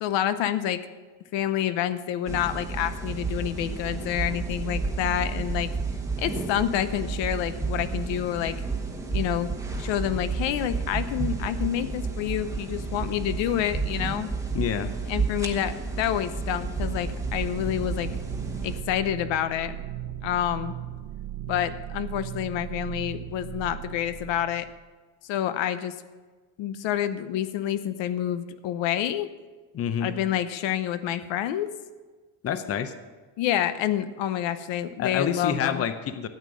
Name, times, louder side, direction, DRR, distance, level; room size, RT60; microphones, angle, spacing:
voice 1, 0.0-0.8 1.3-5.7 6.2-8.6 9.1-9.5 9.8-14.3 15.1-18.1 18.6-19.8 20.2-20.7 21.5-24.6 25.2-25.9 26.6-29.3 30.0-31.7 33.4-35.8, left 11 dB, 85° left, 12 dB, 0.9 m, -28 dB
sound 1, 2.3-18.8, right 4 dB, 5° right, 1.0 m, -31 dB
voice 2, 14.5-14.9 29.7-30.1 32.4-32.9 35.0-36.3, left 8 dB, 35° left, 10 dB, 0.6 m, -27 dB
sound 2, 16.9-24.7, right 12 dB, 55° right, 1.0 m, -37 dB
13.0 x 8.5 x 6.2 m, 1.3 s
cardioid pair, 175°, 43 cm